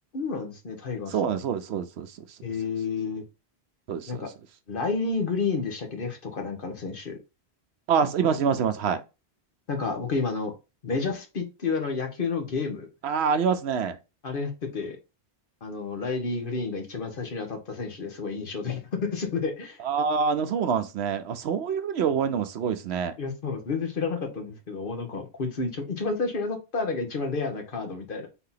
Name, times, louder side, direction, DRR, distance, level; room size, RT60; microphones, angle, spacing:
voice 1, 0.1-1.3 2.4-3.2 4.1-4.3 4.7-7.2 9.7-10.5 10.8-12.9 14.2-15.0 15.6-19.8 23.2-28.3, left 4 dB, 55° left, 1.1 m, -30 dB
voice 2, 1.1-2.4 3.9-4.2 7.9-9.0 13.0-14.0 19.8-23.2, right 6 dB, 75° right, 0.9 m, -26 dB
4.0 x 2.8 x 3.9 m
omnidirectional pair, 1.1 m